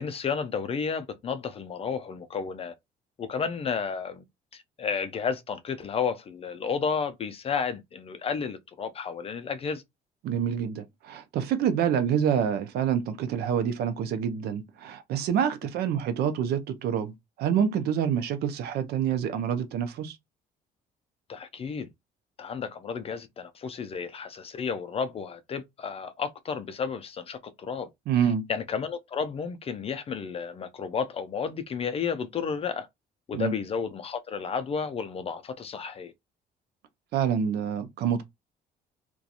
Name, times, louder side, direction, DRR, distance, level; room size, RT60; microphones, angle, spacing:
voice 1, 0.0-2.7 3.2-4.2 4.5-9.8 21.3-21.9 22.4-27.9 28.5-32.9 33.3-36.1, left 6 dB, 35° left, 0.4 m, -32 dB
voice 2, 10.2-17.1 17.4-20.2 28.1-28.4 33.3-33.5 37.1-38.2, right 8 dB, 70° right, 0.5 m, -27 dB
2.4 x 2.2 x 2.7 m
cardioid pair, 110°, 17 cm